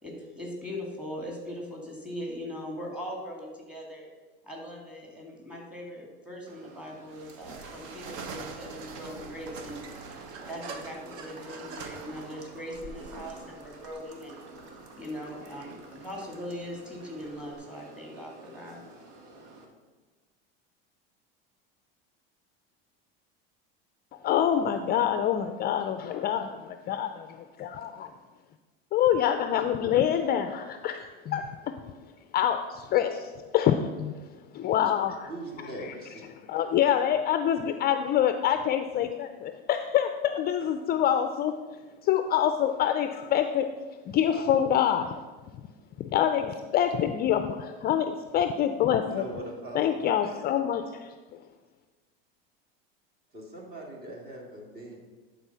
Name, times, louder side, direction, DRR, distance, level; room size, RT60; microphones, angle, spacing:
voice 1, 0.0-4.1 4.4-9.8 10.5-14.4 14.9-18.8, equal, 5° right, -1 dB, 2.3 m, -40 dB
sound 1, 6.5-19.7, right 2 dB, 75° right, 1.6 m, -50 dB
sound 2, 7.1-17.6, right 4 dB, 55° right, 1.1 m, -44 dB
voice 2, 24.1-28.1 28.9-31.8 32.3-35.3 35.8-35.9 36.5-41.5 42.0-43.7 44.1-45.2 46.0-49.2 49.7-51.4, left 10 dB, 35° left, 8 dB, 0.4 m, -26 dB
voice 3, 35.3-36.2 49.0-50.1 53.3-55.0, right 1 dB, 35° right, 0 dB, 2.3 m, -41 dB
11.0 x 4.1 x 5.6 m, 1.3 s
supercardioid pair, 125°, 29 cm